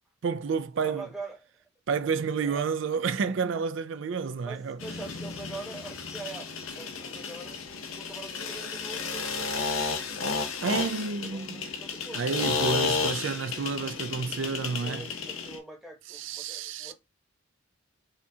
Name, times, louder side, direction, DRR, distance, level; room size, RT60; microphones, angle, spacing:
voice 1, 0.2-1.1 1.9-4.8 10.6-11.7 12.1-15.1 16.1-16.9, right 5 dB, 65° right, 0.4 m, -30 dB
voice 2, 0.8-1.4 2.4-2.7 4.5-6.5 6.8-7.6 7.9-9.5 11.2-12.3 14.8-16.9, right 3 dB, ahead, 1.0 m, -43 dB
sound 1, 4.8-15.6, left 4 dB, 85° left, 0.7 m, -33 dB
4.2 x 2.4 x 2.7 m
head